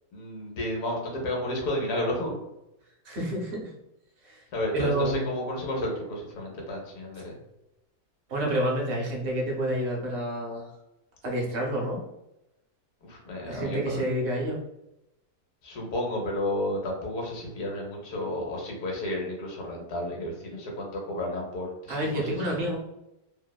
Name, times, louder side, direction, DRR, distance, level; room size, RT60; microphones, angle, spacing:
voice 1, 0.1-2.4 4.5-7.4 13.0-14.1 15.6-22.6, left 1 dB, 80° left, -1 dB, 1.2 m, -32 dB
voice 2, 3.0-3.7 4.2-4.4 4.7-5.3 8.3-10.7 11.2-12.0 13.5-14.6 21.9-22.8, right 1 dB, 55° right, -2 dB, 0.8 m, -29 dB
2.9 x 2.0 x 2.2 m, 0.88 s
omnidirectional pair, 1.6 m